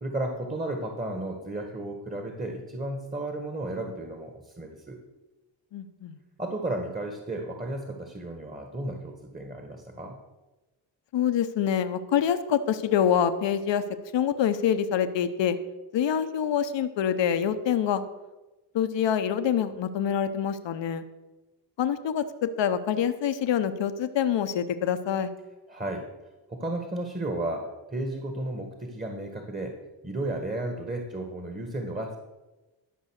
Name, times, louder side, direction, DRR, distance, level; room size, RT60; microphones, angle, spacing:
voice 1, 0.0-5.0 6.4-10.2 25.7-26.1 26.5-29.8 30.0-32.2, right 1 dB, 20° right, 4 dB, 1.7 m, -33 dB
voice 2, 5.7-6.2 11.1-13.8 14.1-15.6 15.9-18.1 18.7-21.0 21.8-25.3, left 8 dB, 65° left, 10 dB, 0.9 m, -26 dB
12.5 x 5.5 x 6.5 m, 1.1 s
cardioid pair, 55°, 47 cm